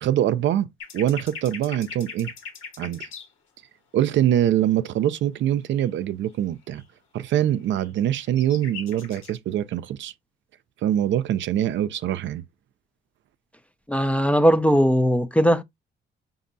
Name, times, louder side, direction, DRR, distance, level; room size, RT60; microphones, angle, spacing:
voice 1, 0.0-0.7 0.9-2.3 2.8-3.1 3.9-6.8 7.1-10.1 10.8-12.4, right 11 dB, 70° right, 0.4 m, -23 dB
sound 1, 0.8-3.3 5.7-5.9 6.7-6.8 7.7-9.4, left 5 dB, 80° left, 1.3 m, -40 dB
voice 2, 13.9-15.6, equal, 5° left, 0.4 m, -19 dB
5.1 x 2.6 x 2.6 m
cardioid pair, 90°, 20 cm